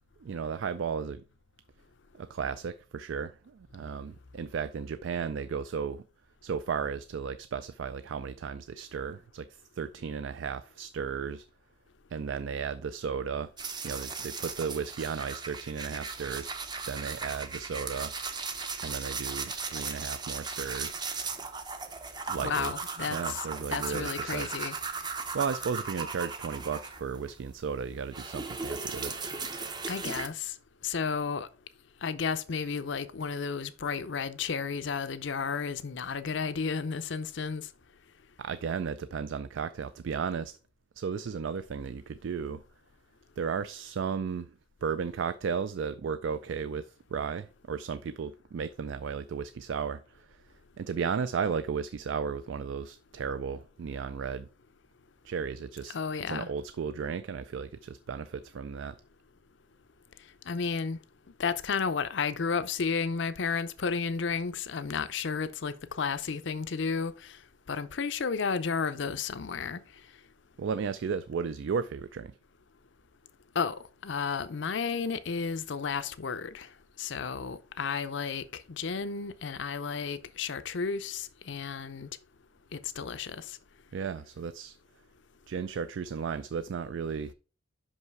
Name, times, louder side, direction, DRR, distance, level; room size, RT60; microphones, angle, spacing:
voice 1, 0.2-1.2 2.1-6.0 6.4-11.5 12.1-13.5 13.8-16.5 16.9-18.1 18.8-21.0 22.3-22.7 23.1-24.5 25.3-29.1 38.4-40.6 41.0-42.6 43.4-44.5 44.8-50.4 50.8-54.5 55.2-55.9 56.3-59.0 70.6-72.4 83.9-84.8 85.5-87.3, right 6 dB, 65° right, 0.3 m, -34 dB
sound 1, 13.6-27.3 27.7-30.3, right 4 dB, 20° right, 0.6 m, -37 dB
voice 2, 22.4-24.7 29.9-30.5 30.8-31.5 32.0-37.7 55.9-56.5 60.5-61.0 61.4-67.4 67.7-69.8 73.5-76.7 77.0-82.1 82.7-83.6, left 5 dB, 60° left, 0.5 m, -32 dB
5.7 x 5.4 x 4.6 m
head